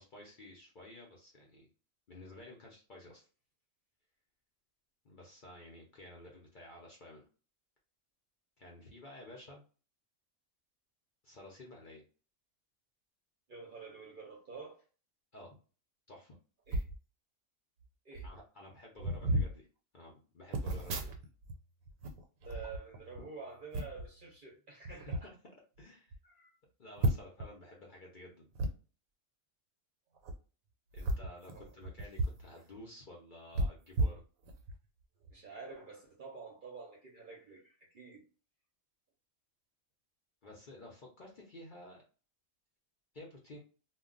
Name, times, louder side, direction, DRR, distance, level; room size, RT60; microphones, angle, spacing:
voice 1, 0.0-1.7 2.1-3.3 5.0-7.3 8.6-9.6 11.2-12.0 15.3-15.5 16.1-16.3 18.2-19.7 19.9-21.1 22.5-22.6 25.1-25.3 25.8-26.1 26.8-28.5 30.9-34.2 40.4-42.0 43.1-43.6, left 1 dB, 50° left, 0.6 m, -52 dB
voice 2, 13.5-14.8 16.7-16.9 18.0-18.3 20.8-20.9 22.4-25.3 26.2-26.6 31.5-31.7 35.3-38.2, right 4 dB, 50° right, 0.7 m, -49 dB
sound 1, 16.7-17.0 17.8-17.9 18.1-18.4 19.0-19.5 20.5-21.6 21.8-23.2 23.7-24.1 24.8-25.2 25.8-25.9 26.1-26.2 27.0-27.5 28.5-28.7 30.2-30.3 30.9-32.4 32.7-32.8 33.5-34.8 35.2-35.4, right 1 dB, 90° right, 1.0 m, -34 dB
2.2 x 2.1 x 3.7 m
omnidirectional pair, 1.4 m